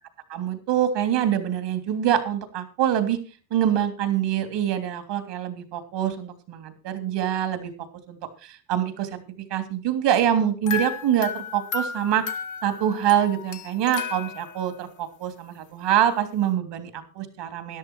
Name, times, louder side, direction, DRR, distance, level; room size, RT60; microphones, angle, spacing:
voice 1, 0.3-3.2 3.5-7.7 8.1-9.2 9.5-12.2 12.6-17.8, right 10 dB, 55° right, 9 dB, 3.3 m, -25 dB
sound 1, 10.7-14.8, left 6 dB, 35° left, 1.9 m, -33 dB
13.5 x 11.0 x 4.6 m, 0.34 s
hypercardioid pair, 75°, 49 cm